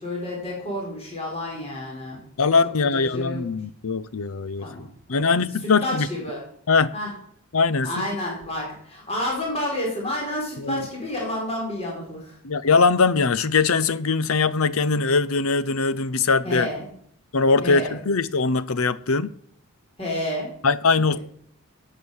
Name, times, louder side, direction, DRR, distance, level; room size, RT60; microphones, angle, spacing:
voice 1, 0.0-2.2 2.9-3.4 4.6-5.5 5.8-6.4 6.9-7.1 7.8-12.4 16.4-16.8 17.6-18.0 20.0-20.5, left 1 dB, 30° left, 4.4 m, -30 dB
voice 2, 2.4-6.1 6.7-6.9 7.5-8.1 10.6-10.9 12.4-16.7 17.3-19.3 20.6-21.2, left 4 dB, 70° left, 0.7 m, -21 dB
12.0 x 8.1 x 7.2 m
head